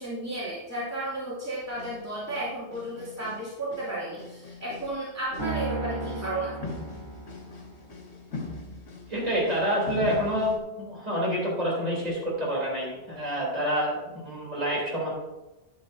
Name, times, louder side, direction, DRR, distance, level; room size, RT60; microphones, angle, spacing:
voice 1, 0.0-6.6, right 1 dB, 15° right, -9 dB, 2.6 m, -33 dB
sound 1, 1.6-2.0 2.3-3.4 3.7-5.0 5.3-5.6 6.0-6.2 6.6-10.6, left 3 dB, 80° left, 1.7 m, -41 dB
Piano, 5.4-7.8, right 3 dB, 60° right, 3.8 m, -35 dB
voice 2, 9.1-15.1, equal, 35° right, -5 dB, 3.4 m, -28 dB
10.0 x 9.9 x 2.7 m, 1.0 s
omnidirectional pair, 1.1 m